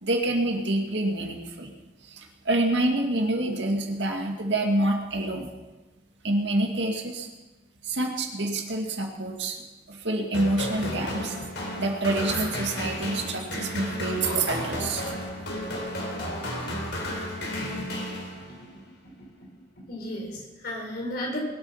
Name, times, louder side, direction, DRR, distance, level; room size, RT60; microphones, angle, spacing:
voice 1, 0.0-1.7 2.0-5.5 6.2-7.3 7.8-11.5 11.8-15.1, right 2 dB, 75° right, 2 dB, 2.2 m, -27 dB
sound 1, 10.3-18.7, left 1 dB, 85° left, 4.2 m, -33 dB
voice 2, 18.4-18.8 19.9-21.4, left 1 dB, 60° left, -1 dB, 4.8 m, -34 dB
21.0 x 8.6 x 5.8 m, 1.2 s
head